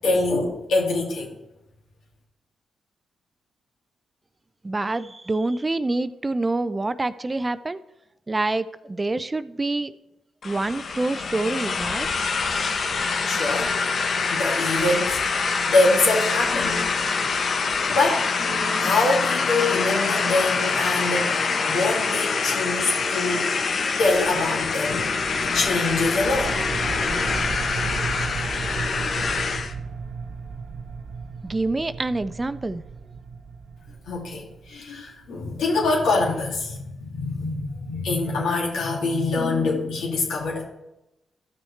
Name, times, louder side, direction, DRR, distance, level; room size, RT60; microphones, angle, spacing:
voice 1, 0.0-1.3 13.3-13.8 14.3-16.9 17.6-23.5 24.0-25.1 25.5-26.6 34.1-40.6, left 2 dB, 75° left, -2 dB, 2.5 m, -24 dB
voice 2, 4.6-7.8 8.3-9.9 10.4-12.1 31.4-32.8, right 2 dB, 30° right, 14 dB, 0.5 m, -26 dB
sound 1, 10.4-29.7, left 4 dB, 60° left, 1.0 m, -25 dB
sound 2, 24.9-35.1, right 5 dB, 65° right, 0.8 m, -35 dB
13.5 x 6.2 x 3.3 m, 0.92 s
hypercardioid pair, 45°, 0 cm